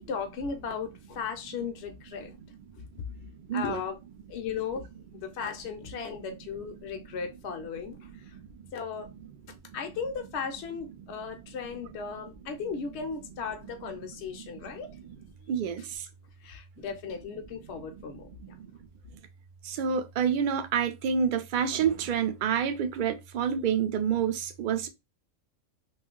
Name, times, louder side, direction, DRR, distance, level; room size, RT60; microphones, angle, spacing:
voice 1, 0.0-2.3 3.5-4.0 4.3-4.9 5.1-8.4 8.7-9.1 9.7-15.0 16.4-18.3, left 6 dB, 70° left, 0.8 m, -36 dB
voice 2, 2.8-3.8 6.8-7.2 8.0-8.7 9.5-9.8 11.3-11.4 11.7-12.0 14.0-15.2 15.5-16.1 16.8-16.9 17.7-18.7 19.1-19.2 19.6-24.9, right 7 dB, 60° right, 0.5 m, -30 dB
2.6 x 2.4 x 3.7 m
omnidirectional pair, 1.3 m